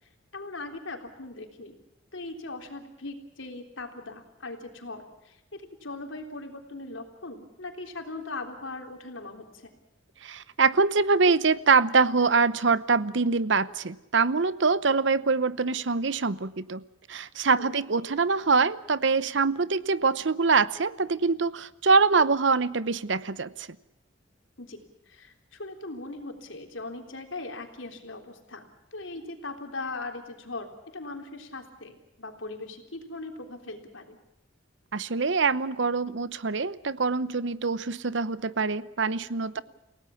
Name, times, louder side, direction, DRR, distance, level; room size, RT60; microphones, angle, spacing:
voice 1, 0.3-1.7 2.1-9.7 17.5-17.8 24.6-28.7 28.9-34.2, left 2 dB, 80° left, 4 dB, 3.6 m, -40 dB
voice 2, 10.2-16.8 17.1-23.7 34.9-39.6, right 4 dB, 70° right, 17 dB, 0.8 m, -24 dB
29.0 x 17.5 x 7.1 m, 0.92 s
head